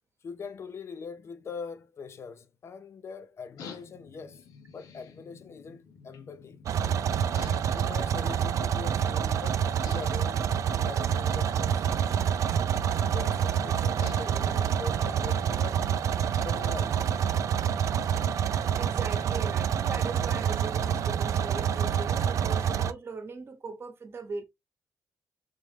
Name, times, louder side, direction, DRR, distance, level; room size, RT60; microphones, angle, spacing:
voice 1, 0.2-4.4 4.7-6.6 7.7-11.8 13.1-15.9 16.2-17.1 22.1-22.4, left 5 dB, 50° left, 0.6 m, -42 dB
sound 1, 3.6-21.7, left 5 dB, 85° left, 0.8 m, -51 dB
sound 2, 6.7-22.9, right 8 dB, 65° right, 0.4 m, -27 dB
voice 2, 18.8-24.4, right 4 dB, 40° right, 1.0 m, -39 dB
3.7 x 3.1 x 3.2 m
cardioid pair, 95°, 6 cm